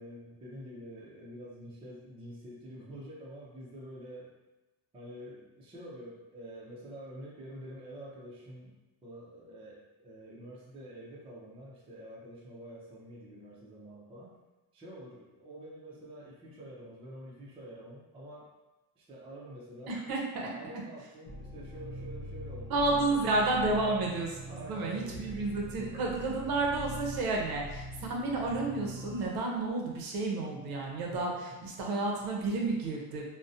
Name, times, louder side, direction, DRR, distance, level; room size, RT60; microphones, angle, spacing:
voice 1, 0.0-4.3 4.9-8.7 9.0-14.4 14.7-18.5 19.0-20.0 20.3-24.0 24.4-26.4 31.1-31.6, equal, 15° right, -6 dB, 0.4 m, -47 dB
voice 2, 19.9-20.5 22.7-31.3 31.6-33.3, right 2 dB, 55° right, -1 dB, 0.6 m, -31 dB
sound 1, 21.3-29.3, equal, 25° left, 0.8 m, -43 dB
2.4 x 2.0 x 2.6 m, 1.1 s
cardioid pair, 135°, 43 cm